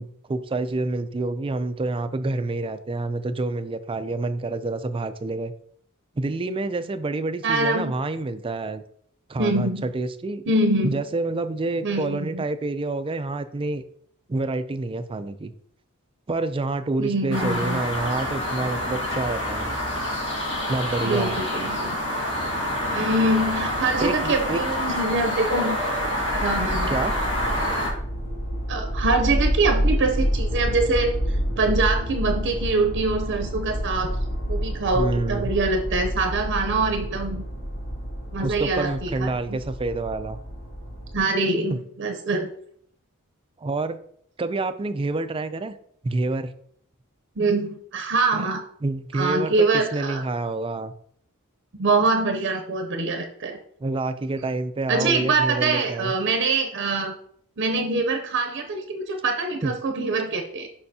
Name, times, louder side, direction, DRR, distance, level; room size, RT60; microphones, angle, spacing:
voice 1, 0.0-5.5 6.2-8.8 9.3-10.4 10.8-13.8 14.3-15.5 16.3-19.7 20.7-21.4 24.0-24.6 26.9-27.2 34.9-35.5 38.4-40.4 41.7-41.8 43.6-44.0 44.4-45.7 46.0-46.5 48.3-48.5 48.8-50.9 53.8-56.1 59.6-59.7, right 2 dB, 25° right, 11 dB, 0.4 m, -28 dB
voice 2, 7.4-7.9 9.4-9.9 10.5-11.0 11.8-12.4 17.0-17.8 21.0-21.9 22.9-25.8 26.4-27.0 28.7-34.2 34.5-37.4 38.3-39.6 41.1-42.5 47.4-48.6 49.1-50.2 51.8-53.6 54.9-57.1 57.6-60.7, right 3 dB, 55° right, 5 dB, 0.7 m, -24 dB
sound 1, 17.3-27.9, left 1 dB, 60° left, 1.9 m, -27 dB
sound 2, 22.5-41.2, equal, 75° left, 1.8 m, -29 dB
6.6 x 5.6 x 2.8 m, 0.64 s
head